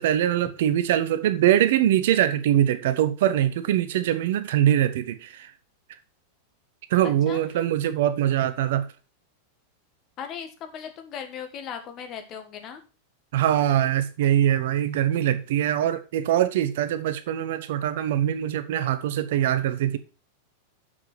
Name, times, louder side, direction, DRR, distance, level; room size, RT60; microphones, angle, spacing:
voice 1, 0.0-5.5 6.9-8.9 13.3-20.0, right 11 dB, 55° right, 0.8 m, -23 dB
voice 2, 7.0-7.4 10.2-12.8, left 7 dB, 35° left, 1.6 m, -37 dB
7.1 x 6.2 x 5.8 m
figure-of-eight pair, 90°, 0 cm